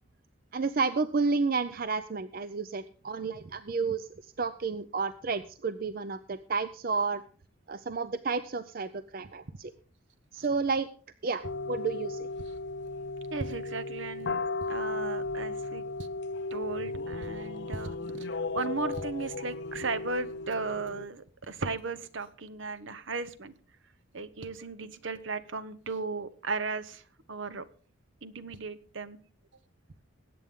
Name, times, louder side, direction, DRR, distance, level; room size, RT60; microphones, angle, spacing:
voice 1, 0.5-7.2 7.7-9.7 10.3-10.9 11.2-12.3, right 4 dB, 45° right, 13 dB, 0.5 m, -31 dB
sound 1, 11.4-21.1, left 3 dB, 55° left, 0.5 m, -35 dB
voice 2, 13.3-14.4 14.7-16.1 16.5-18.3 18.5-23.5 24.1-27.0 27.3-27.6 28.2-29.2, right 4 dB, 65° right, 14 dB, 0.9 m, -36 dB
21.0 x 8.6 x 3.7 m, 0.43 s
head